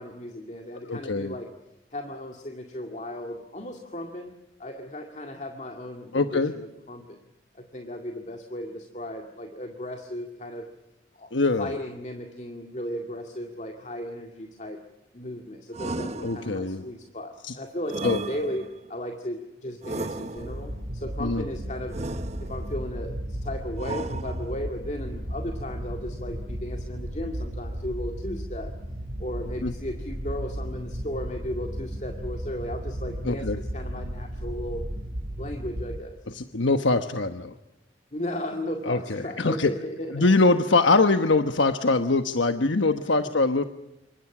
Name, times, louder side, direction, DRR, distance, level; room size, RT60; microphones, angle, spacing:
voice 1, 0.0-1.5 1.9-4.3 4.6-7.2 7.5-10.7 11.1-11.3 11.6-14.8 15.1-22.0 22.4-28.8 29.2-34.9 35.4-36.2 38.1-40.4 43.2-43.3, left 1 dB, 40° left, 3 dB, 2.1 m, -35 dB
voice 2, 0.9-1.3 6.1-6.5 11.3-11.7 16.2-16.8 17.4-17.6 18.0-18.2 21.2-21.4 29.6-29.7 33.2-33.6 36.3-37.5 38.8-39.7 40.1-43.6, left 3 dB, 85° left, 8 dB, 1.2 m, -23 dB
sound 1, 15.7-16.8 17.9-18.9 19.8-20.8 21.9-22.8 23.8-24.7, right 2 dB, 35° right, 0.9 m, -35 dB
sound 2, 20.4-36.0, equal, 70° right, 4.2 m, -34 dB
28.0 x 25.5 x 6.1 m, 0.93 s
head